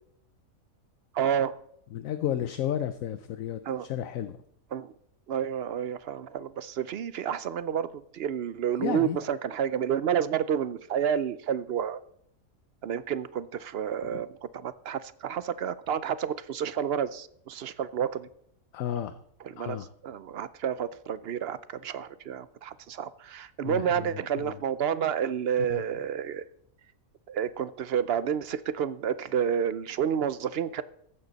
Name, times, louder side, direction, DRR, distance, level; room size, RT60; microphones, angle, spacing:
voice 1, 1.1-1.5 3.7-3.9 4.7-4.9 5.3-12.0 12.8-14.3 14.5-18.3 19.6-26.4 27.3-30.8, right 8 dB, 60° right, 15 dB, 0.6 m, -30 dB
voice 2, 1.9-4.4 8.8-9.2 14.0-14.2 18.7-19.2 19.6-19.9 23.6-24.5 25.7-25.8, left 11 dB, 70° left, 11 dB, 1.1 m, -33 dB
15.0 x 11.0 x 4.0 m, 0.71 s
omnidirectional pair, 1.5 m